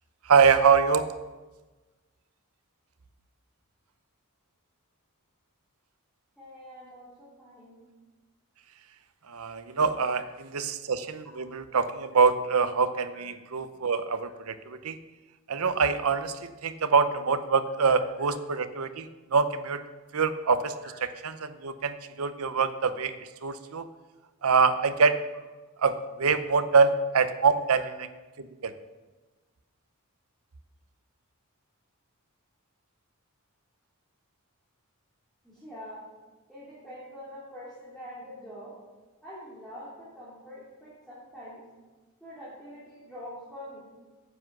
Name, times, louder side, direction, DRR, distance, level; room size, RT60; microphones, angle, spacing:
voice 1, 0.3-1.1 9.3-15.0 15.5-19.8 20.1-20.7 21.0-23.9 24.4-25.2 25.8-27.8 28.4-28.7, right 5 dB, 80° right, 11 dB, 0.7 m, -25 dB
voice 2, 6.4-7.8 35.4-36.1 36.5-38.8 39.2-41.6 42.2-43.8, equal, ahead, -9 dB, 3.0 m, -44 dB
9.7 x 7.9 x 6.0 m, 1.2 s
head